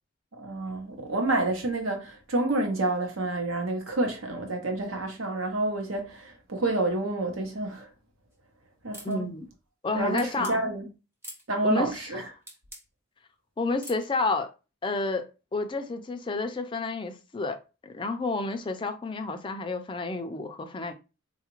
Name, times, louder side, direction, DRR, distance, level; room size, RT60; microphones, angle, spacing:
voice 1, 0.4-7.9 8.8-9.2 9.9-10.9 11.5-12.3, right 2 dB, 75° right, 0.9 m, -29 dB
sound 1, 8.9-9.2 10.2-10.6 11.2-11.4 12.5-12.8 13.8-14.1, equal, 10° right, 0.7 m, -43 dB
voice 2, 9.0-9.5 9.8-10.6 11.6-12.0 13.6-14.5 14.8-20.9, left 3 dB, 25° left, 0.3 m, -30 dB
3.8 x 2.4 x 3.0 m
head